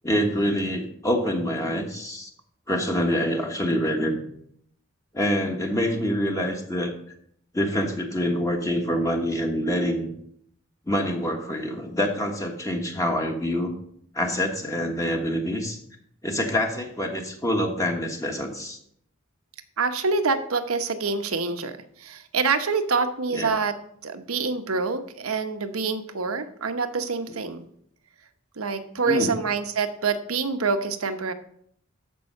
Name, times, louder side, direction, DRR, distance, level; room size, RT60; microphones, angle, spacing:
voice 1, 0.0-2.3 2.7-4.2 5.1-6.9 7.5-10.1 10.9-13.7 14.1-15.8 16.2-18.8 23.3-23.5 29.1-29.3, equal, 15° left, 2 dB, 1.2 m, -26 dB
voice 2, 19.8-23.8 24.0-27.6 28.6-31.3, right 4 dB, 85° right, 8 dB, 1.0 m, -26 dB
13.5 x 5.5 x 5.4 m, 0.67 s
head